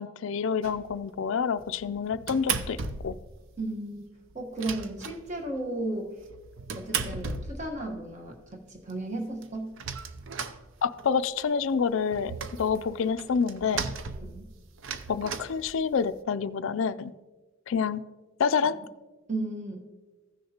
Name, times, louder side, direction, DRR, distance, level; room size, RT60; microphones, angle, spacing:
voice 1, 0.0-2.8 3.0-3.2 10.8-13.9 15.1-17.1 17.7-18.0 18.4-18.8, left 6 dB, 65° left, 14 dB, 0.4 m, -28 dB
sound 1, 0.6-1.1 1.6-3.3 3.6-3.7 4.0-4.1 4.3-5.7 6.2-8.0 8.5-8.6 8.9-9.0 9.2-11.3 11.6-16.2, right 5 dB, 60° right, 0.5 m, -36 dB
voice 2, 3.6-4.0 4.3-6.1 6.7-9.7 14.2-14.5 19.3-19.9, right 2 dB, 35° right, 1 dB, 1.2 m, -34 dB
15.5 x 6.5 x 2.9 m, 1.2 s
head